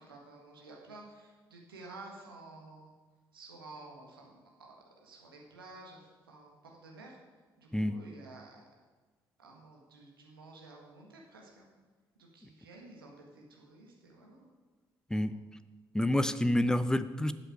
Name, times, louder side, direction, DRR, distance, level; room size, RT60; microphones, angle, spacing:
voice 1, 0.0-2.9 3.3-7.2 7.6-8.6 9.4-11.7 12.2-14.5 15.2-15.4, right 2 dB, 85° right, -1 dB, 1.6 m, -52 dB
voice 2, 15.9-17.3, left 1 dB, 5° left, 14 dB, 0.6 m, -28 dB
12.5 x 7.9 x 4.8 m, 1.3 s
figure-of-eight pair, 45°, 12 cm